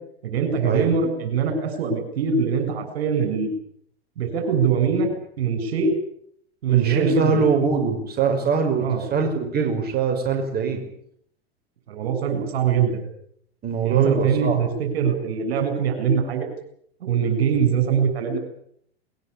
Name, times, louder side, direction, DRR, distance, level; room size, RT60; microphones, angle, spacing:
voice 1, 0.2-3.5 4.2-5.1 5.4-5.9 6.6-7.4 8.8-9.0 11.9-13.0 13.8-16.5 17.0-18.4, right 6 dB, 70° right, 7 dB, 7.6 m, -22 dB
voice 2, 6.7-8.9 9.1-10.8 13.6-14.6, right 5 dB, 30° right, 3 dB, 5.7 m, -22 dB
21.5 x 21.0 x 8.7 m, 0.68 s
hypercardioid pair, 100°, 32 cm